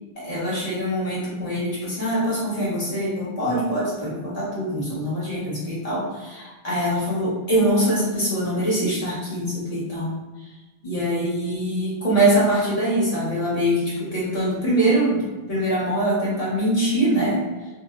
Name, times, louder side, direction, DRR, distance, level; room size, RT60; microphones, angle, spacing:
voice 1, 0.2-10.1 10.8-17.4, right 1 dB, 40° left, -8 dB, 1.2 m, -23 dB
2.6 x 2.1 x 3.5 m, 1.2 s
omnidirectional pair, 1.0 m